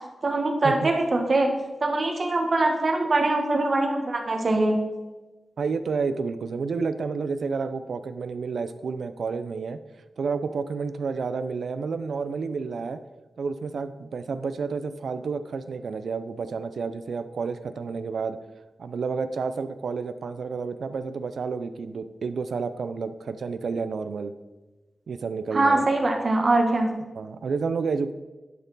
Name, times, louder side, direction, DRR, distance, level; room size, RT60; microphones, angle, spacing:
voice 1, 0.2-1.5 1.8-4.8 25.5-26.9, right 2 dB, 45° right, 3 dB, 1.1 m, -23 dB
voice 2, 5.6-9.8 10.2-13.0 13.4-18.4 18.8-24.3 25.1-25.9 27.1-28.1, right 5 dB, 80° right, 11 dB, 0.4 m, -30 dB
11.0 x 4.4 x 4.0 m, 1.2 s
wide cardioid pair, 120°, 0 cm